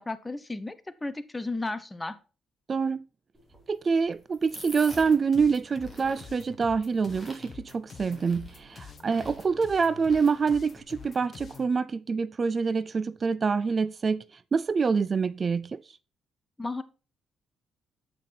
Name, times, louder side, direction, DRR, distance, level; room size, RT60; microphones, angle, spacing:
voice 1, 0.0-2.2 16.6-16.8, left 2 dB, 15° left, 0.8 m, -34 dB
voice 2, 2.7-3.0 3.7-15.8, right 5 dB, 40° right, 0.3 m, -26 dB
sound 1, 3.3-10.8, right 1 dB, 15° right, 3.1 m, -48 dB
sound 2, 4.9-11.7, left 6 dB, 45° left, 0.9 m, -47 dB
8.5 x 5.8 x 4.3 m
cardioid pair, 90°, 0 cm